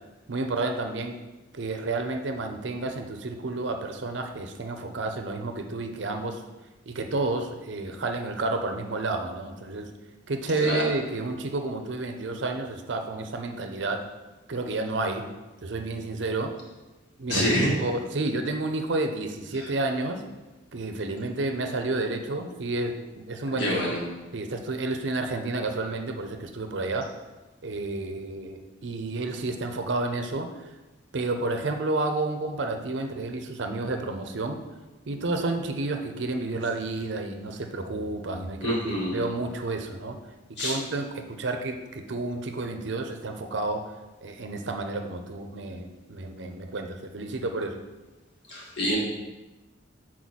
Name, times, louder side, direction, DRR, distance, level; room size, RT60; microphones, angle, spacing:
voice 1, 0.3-1.2 1.5-6.4 6.9-9.9 10.3-14.1 14.5-15.3 15.6-16.6 17.2-20.2 20.7-23.8 24.3-27.1 27.6-30.7 31.1-34.6 35.1-40.2 40.5-43.9 44.2-47.8, right 2 dB, 65° right, 5 dB, 0.6 m, -30 dB
voice 2, 17.3-17.7 23.6-24.0 38.6-39.2 40.6-40.8 48.5-49.0, equal, 60° left, -4 dB, 1.7 m, -26 dB
6.1 x 4.4 x 4.1 m, 1.1 s
head